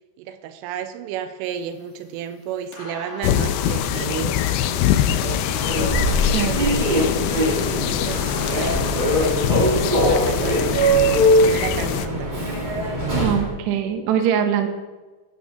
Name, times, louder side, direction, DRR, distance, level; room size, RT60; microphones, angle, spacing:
voice 1, 0.2-5.5 6.4-7.2 7.5-8.2 8.5-9.5 9.8-12.5, right 9 dB, 90° right, 9 dB, 3.3 m, -33 dB
sound 1, 1.4-9.4, left 1 dB, 45° left, 1.1 m, -42 dB
sound 2, 3.2-12.1, left 11 dB, 80° left, 2.8 m, -24 dB
Human voice / Subway metro underground, 5.5-13.5, equal, 30° right, 0.7 m, -21 dB
voice 2, 13.1-14.7, right 9 dB, 70° right, 5 dB, 3.2 m, -22 dB
15.5 x 6.3 x 7.1 m, 1.2 s
omnidirectional pair, 5.6 m